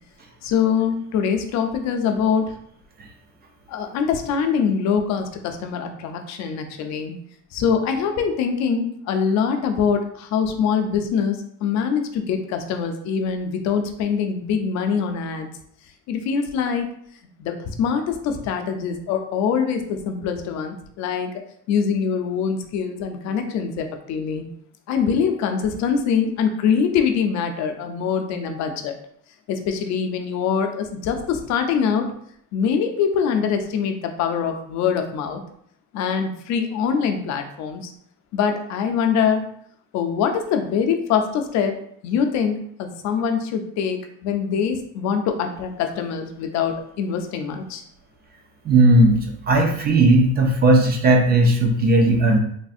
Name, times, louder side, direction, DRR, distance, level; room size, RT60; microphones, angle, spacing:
voice 1, 0.4-2.5 3.7-7.2 7.5-15.5 16.1-16.9 17.4-21.3 21.7-24.5 24.9-29.0 29.5-32.1 32.5-35.4 35.9-37.9 38.3-39.4 39.9-41.8 42.0-47.8, left 6 dB, 55° left, 6 dB, 0.5 m, -23 dB
voice 2, 48.7-49.2 49.5-52.4, right 2 dB, 30° right, 2 dB, 0.4 m, -16 dB
3.3 x 2.5 x 2.4 m, 0.67 s
cardioid pair, 145°, 33 cm